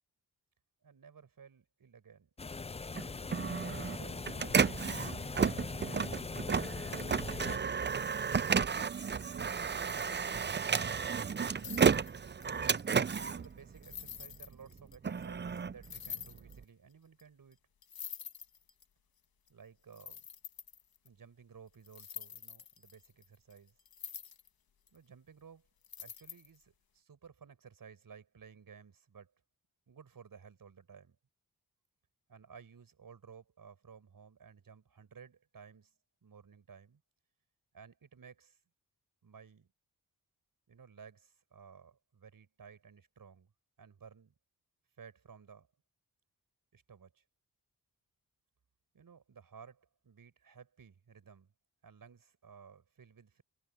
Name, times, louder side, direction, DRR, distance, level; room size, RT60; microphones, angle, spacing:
voice 1, 0.8-2.3 3.8-4.3 5.0-6.5 11.5-11.8 12.5-12.7 13.1-17.6 19.5-20.2 21.0-23.7 24.9-25.7 26.0-29.3 29.9-31.2 32.3-35.9 36.2-37.0 37.7-38.6 39.2-39.7 40.7-43.5 43.8-44.3 45.0-45.7 46.7-47.2 48.9-51.5 51.8-53.4, right 6 dB, 65° right, 6.5 m, -56 dB
sound 1, 2.4-7.6, left 4 dB, 15° left, 0.4 m, -41 dB
Printer, 2.9-14.3 14.8-16.6, right 6 dB, 30° right, 0.6 m, -32 dB
sound 2, 9.9-10.6 11.1-15.0 15.2-15.3 15.6-15.7 15.8-16.6 17.2-17.3 17.5-17.6 17.8-18.8 19.5-19.6 19.9-21.1 21.8-24.5 24.9-25.0 25.8-26.6, left 8 dB, 75° left, 1.6 m, -47 dB
cardioid pair, 60°, 36 cm